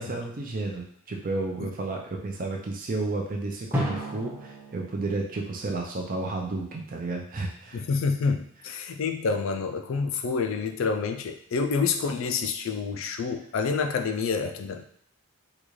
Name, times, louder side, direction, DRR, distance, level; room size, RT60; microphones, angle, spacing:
voice 1, 0.0-7.9, right 2 dB, 40° right, 0 dB, 0.5 m, -32 dB
Drum, 3.7-6.4, equal, 10° right, 0.7 m, -34 dB
voice 2, 7.7-14.8, left 5 dB, 65° left, 6 dB, 0.3 m, -28 dB
3.8 x 2.3 x 3.1 m, 0.67 s
head